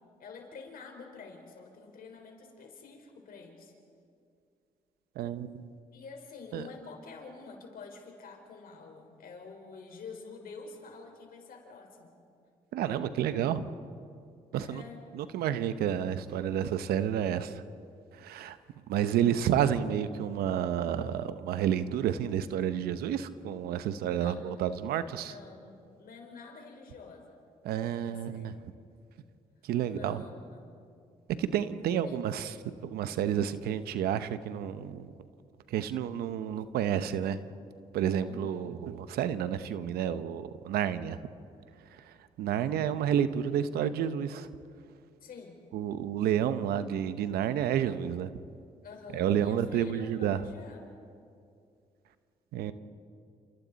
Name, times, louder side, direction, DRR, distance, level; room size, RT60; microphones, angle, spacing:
voice 1, 0.2-3.7 5.9-12.1 14.6-15.0 24.1-24.5 25.3-27.4 28.0-28.6 29.8-30.7 32.0-32.2 38.2-38.8 45.2-45.6 48.8-50.9, left 4 dB, 70° left, 2 dB, 4.5 m, -48 dB
voice 2, 5.1-5.7 6.5-6.7 12.7-13.7 14.5-14.8 15.1-17.6 18.1-18.6 18.9-25.3 27.6-28.6 29.6-30.2 31.4-32.5 32.8-35.1 35.7-37.4 37.9-41.2 41.9-44.5 45.7-48.3 49.1-50.4 52.5-52.7, right 9 dB, 85° right, 12 dB, 0.9 m, -30 dB
29.0 x 28.0 x 4.1 m, 2.4 s
supercardioid pair, 55°, 16 cm